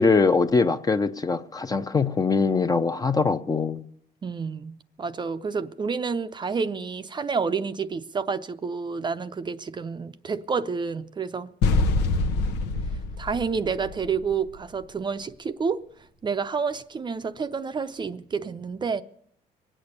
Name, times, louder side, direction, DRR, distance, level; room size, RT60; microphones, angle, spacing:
voice 1, 0.0-3.8, left 4 dB, 20° left, 0.6 m, -22 dB
voice 2, 4.2-11.5 13.2-15.8 16.2-19.0, right 5 dB, 25° right, 0.5 m, -29 dB
sound 1, 11.6-14.6, left 3 dB, 85° left, 0.9 m, -25 dB
22.5 x 8.8 x 6.6 m
cardioid pair, 110°, 17 cm